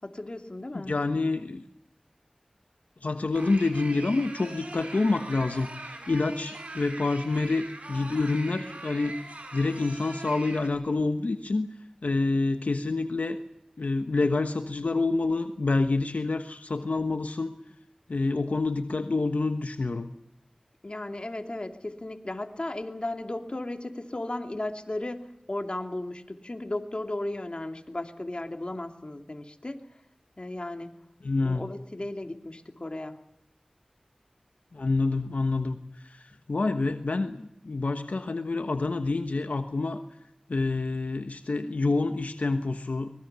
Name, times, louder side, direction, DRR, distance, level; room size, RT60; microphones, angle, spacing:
voice 1, 0.0-1.0 20.8-29.9 30.4-30.9 31.4-33.2, left 1 dB, 45° left, 5 dB, 2.9 m, -35 dB
voice 2, 0.7-1.6 3.0-9.1 9.5-11.7 12.0-13.4 13.8-17.5 18.1-20.1 31.2-31.6 34.7-40.0 40.5-43.1, left 3 dB, 85° left, 7 dB, 1.2 m, -27 dB
sound 1, 3.3-10.7, right 2 dB, 65° right, 5.6 m, -42 dB
25.0 x 21.0 x 7.0 m, 0.79 s
wide cardioid pair, 45°, 2 cm